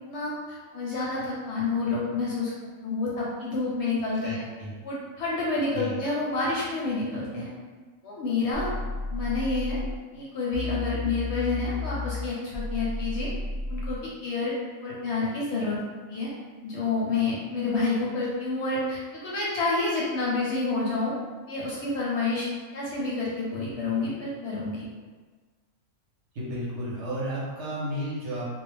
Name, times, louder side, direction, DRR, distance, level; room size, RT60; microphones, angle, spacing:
voice 1, 0.1-2.5 2.8-4.4 4.8-7.5 8.0-8.7 9.1-9.8 10.1-13.3 13.7-14.5 14.8-15.8 16.1-16.3 16.6-21.1 21.5-22.5 22.7-24.8, left 3 dB, 65° left, -6 dB, 0.8 m, -29 dB
voice 2, 4.2-4.7 5.7-6.0 26.3-28.6, equal, 60° right, -6 dB, 0.8 m, -33 dB
sound 1, 8.5-10.0 10.5-14.0, left 2 dB, 85° left, 1.0 m, -32 dB
2.3 x 2.0 x 3.2 m, 1.4 s
omnidirectional pair, 1.4 m